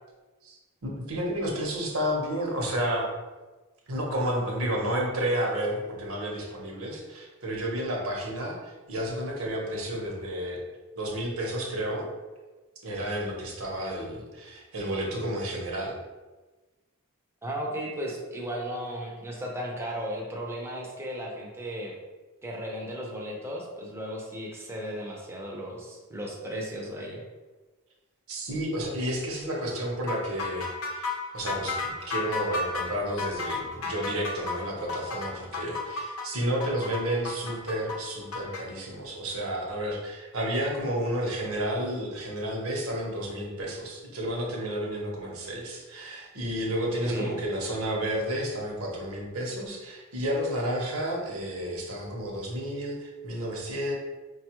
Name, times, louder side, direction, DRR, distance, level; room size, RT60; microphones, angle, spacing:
voice 1, 0.4-3.1 3.9-10.6 11.0-12.1 12.8-15.9 28.3-54.0, equal, 70° right, -1 dB, 0.9 m, -31 dB
voice 2, 17.4-21.9 22.4-27.2 47.0-47.4, equal, 10° right, -2 dB, 0.6 m, -35 dB
sound 1, 30.1-38.6, left 4 dB, 70° left, 0.6 m, -33 dB
5.0 x 2.3 x 2.9 m, 1.2 s
head